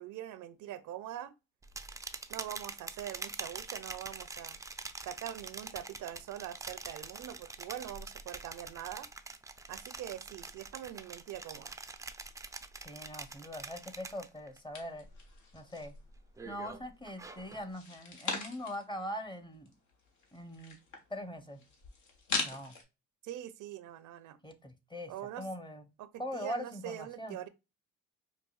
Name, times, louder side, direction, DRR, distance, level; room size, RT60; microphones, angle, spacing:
voice 1, 0.0-1.3 2.3-4.6 5.1-9.1 9.7-11.8 23.2-24.4 25.1-25.5 26.0-27.5, right 11 dB, 80° right, 0.5 m, -43 dB
sound 1, 1.6-14.6 14.9-15.4 15.8-17.7, right 3 dB, 10° right, 0.3 m, -45 dB
voice 2, 12.8-15.1 15.5-15.9 16.4-19.7 20.3-20.8 21.1-21.6 22.4-22.8 24.4-25.1 25.4-25.8 26.2-27.4, equal, 15° left, 0.8 m, -41 dB
sound 2, 14.7-16.0 16.4-17.1 17.6-18.9 19.3-19.4 19.5-22.8, left 4 dB, 75° left, 1.3 m, -40 dB
4.8 x 2.3 x 2.2 m
cardioid pair, 90°, 30 cm